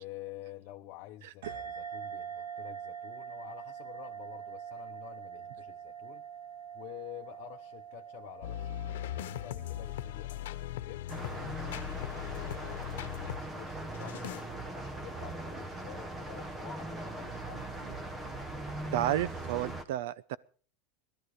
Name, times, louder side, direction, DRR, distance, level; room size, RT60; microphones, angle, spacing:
voice 1, 0.0-6.2 6.7-12.9 13.4-18.0, left 15 dB, 40° left, 1.0 m, -49 dB
sound 1, 1.4-10.5, right 8 dB, 90° right, 2.4 m, -44 dB
sound 2, 8.4-13.4 13.9-14.4, left 13 dB, 80° left, 1.1 m, -39 dB
sound 3, 11.1-19.8, right 2 dB, 10° right, 1.1 m, -40 dB
voice 2, 18.9-20.4, right 13 dB, 65° right, 0.7 m, -31 dB
19.5 x 12.5 x 4.9 m
supercardioid pair, 175°, 0 cm